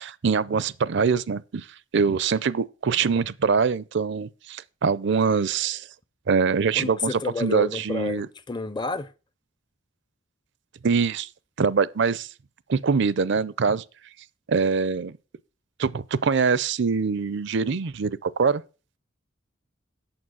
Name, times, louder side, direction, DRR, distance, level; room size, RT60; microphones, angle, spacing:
voice 1, 0.0-1.7 1.9-5.9 6.3-7.1 7.4-8.3 10.8-11.3 11.6-12.3 12.7-13.8 14.5-15.2 15.8-18.6, right 5 dB, 65° right, 0.5 m, -23 dB
voice 2, 6.7-9.1, left 3 dB, 25° left, 0.5 m, -30 dB
8.8 x 7.2 x 6.2 m
head